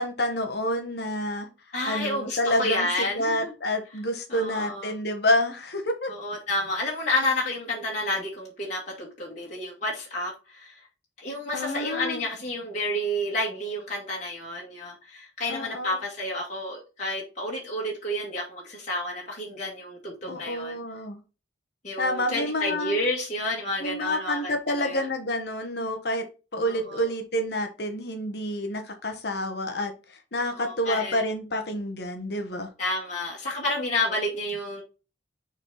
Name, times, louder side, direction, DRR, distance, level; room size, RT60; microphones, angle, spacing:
voice 1, 0.0-1.5 1.8-6.2 11.5-12.2 15.5-16.0 20.3-21.2 22.0-23.0 23.8-26.2 26.5-32.7, left 1 dB, 60° left, 1.2 m, -28 dB
voice 2, 1.7-3.5 4.3-4.9 6.1-10.8 11.2-20.8 21.8-25.1 26.6-27.1 30.5-31.2 32.8-34.8, left 1 dB, 40° left, 2.1 m, -30 dB
6.3 x 4.2 x 4.2 m
head